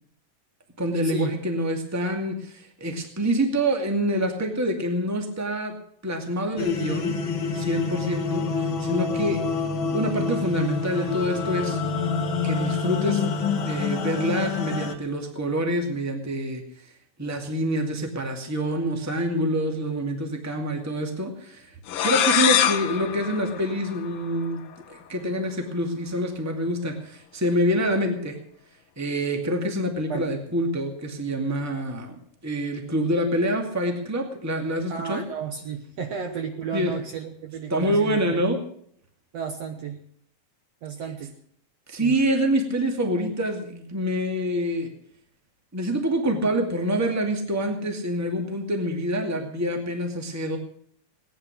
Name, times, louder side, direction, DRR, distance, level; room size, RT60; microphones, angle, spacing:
voice 1, 0.8-5.8 6.0-7.2 7.4-9.4 9.9-11.8 12.4-13.2 13.6-16.6 17.2-21.7 22.0-24.6 24.9-28.4 29.0-32.1 32.4-35.2 36.7-36.9 37.7-38.6 41.9-44.9 45.7-50.6, equal, 5° right, 4 dB, 1.6 m, -26 dB
sound 1, 6.6-14.9, left 5 dB, 50° left, 1.7 m, -27 dB
sound 2, 21.9-24.5, left 9 dB, 75° left, 1.2 m, -24 dB
voice 2, 34.9-38.4 39.3-40.0 40.8-41.3 42.0-42.2, right 6 dB, 60° right, 6 dB, 2.0 m, -33 dB
18.5 x 10.0 x 6.4 m, 0.63 s
omnidirectional pair, 3.8 m